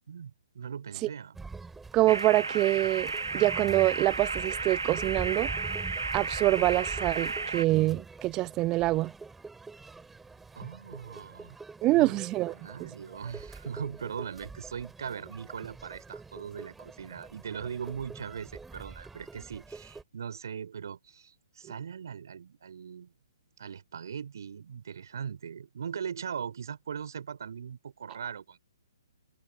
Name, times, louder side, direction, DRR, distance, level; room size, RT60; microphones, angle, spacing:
voice 1, 0.1-1.4 10.5-11.6 11.9-12.2 12.5-23.1 23.6-28.6, right 7 dB, 55° right, 3.3 m, -40 dB
sound 1, 1.3-20.0, right 4 dB, 5° right, 3.5 m, -45 dB
voice 2, 1.9-5.5 6.1-9.1 11.8-12.5 12.8-12.9, right 18 dB, 20° right, 0.8 m, -25 dB
sound 2, 2.1-7.6, right 4 dB, 75° right, 1.5 m, -33 dB
figure-of-eight pair, 125°, 2 cm